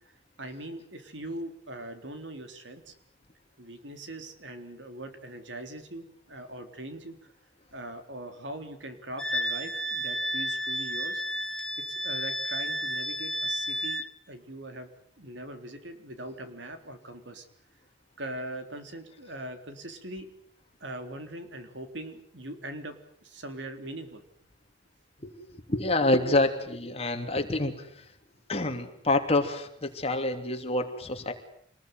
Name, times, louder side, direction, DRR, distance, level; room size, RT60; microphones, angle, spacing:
voice 1, 0.4-2.9 3.6-7.2 7.7-11.2 11.9-14.9 15.2-17.5 18.2-20.3 20.8-24.2, right 1 dB, 70° right, 7 dB, 3.8 m, -41 dB
Wind instrument woodwind instrument, 9.2-14.1, equal, 5° left, 2.0 m, -31 dB
voice 2, 25.2-28.0 28.5-31.3, left 2 dB, 35° left, 5 dB, 3.2 m, -27 dB
27.0 x 20.5 x 9.5 m, 0.66 s
head